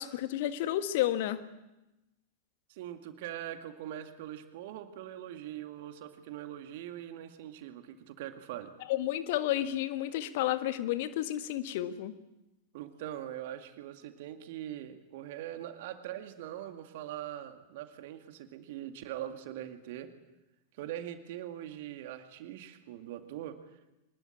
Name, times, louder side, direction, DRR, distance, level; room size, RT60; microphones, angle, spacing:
voice 1, 0.0-1.4 8.9-12.1, left 13 dB, 50° left, 10 dB, 1.6 m, -31 dB
voice 2, 2.7-8.7 12.7-20.1 20.7-23.9, right 12 dB, 50° right, 7 dB, 2.2 m, -42 dB
24.5 x 20.5 x 8.7 m, 0.98 s
figure-of-eight pair, 90°, 0 cm